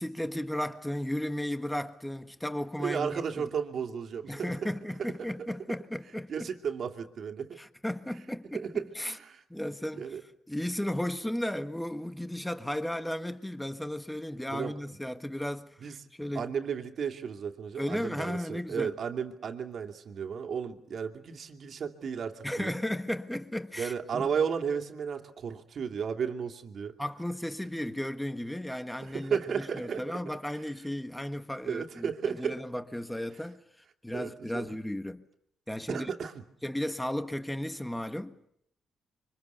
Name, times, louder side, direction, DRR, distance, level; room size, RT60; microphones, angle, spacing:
voice 1, 0.0-3.5 4.3-6.5 7.6-9.2 9.5-10.2 10.5-16.5 17.8-18.9 22.4-24.3 27.0-33.6 34.0-35.3 35.7-36.1 36.6-38.4, left 1 dB, 5° left, 1.6 m, -35 dB
voice 2, 2.8-4.7 5.4-5.5 6.3-7.6 8.5-9.4 9.9-10.2 14.5-14.8 15.8-16.0 16.3-22.7 23.8-26.9 29.0-30.0 31.6-32.6 34.1-34.7 35.9-36.4, right 7 dB, 60° right, 2.7 m, -34 dB
27.5 x 24.5 x 6.9 m
cardioid pair, 85°, 0 cm